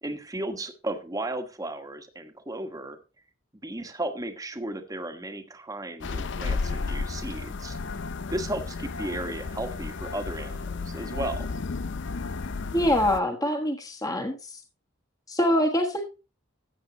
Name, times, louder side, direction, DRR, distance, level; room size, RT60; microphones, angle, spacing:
voice 1, 0.0-3.0 3.6-8.0 8.3-11.5, right 1 dB, 15° right, 7 dB, 1.3 m, -35 dB
sound 1, 6.0-13.2, left 4 dB, 60° left, 0.5 m, -33 dB
voice 2, 12.7-14.5 15.3-16.0, left 1 dB, 15° left, 3 dB, 1.4 m, -24 dB
14.5 x 8.2 x 2.9 m, 0.30 s
head